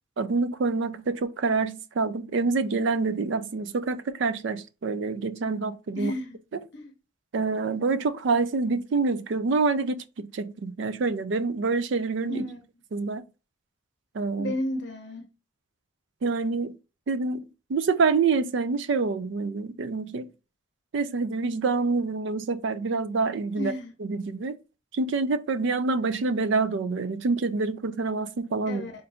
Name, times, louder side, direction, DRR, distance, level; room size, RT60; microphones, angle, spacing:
voice 1, 0.2-6.1 7.3-12.4 12.9-13.3 14.1-14.5 16.2-16.7 17.1-20.3 20.9-23.7 24.1-24.6 24.9-28.9, right 4 dB, 60° right, 0.4 m, -26 dB
voice 2, 5.9-6.4 6.7-6.9 12.3-12.6 14.4-15.3 23.6-23.9 28.7-28.9, left 1 dB, 55° left, 0.7 m, -33 dB
3.8 x 2.6 x 3.3 m
head